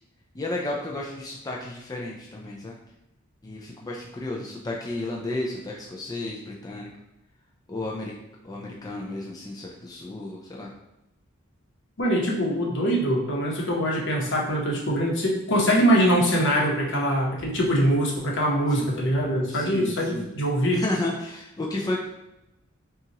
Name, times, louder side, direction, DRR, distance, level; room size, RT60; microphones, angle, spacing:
voice 1, 0.3-2.8 3.4-6.9 7.7-8.1 8.4-10.7 18.7-18.9 19.5-20.3 20.7-22.0, left 2 dB, 20° left, -2 dB, 0.4 m, -32 dB
voice 2, 12.0-20.8, equal, 60° left, -2 dB, 1.0 m, -23 dB
5.6 x 2.4 x 2.9 m, 0.90 s
head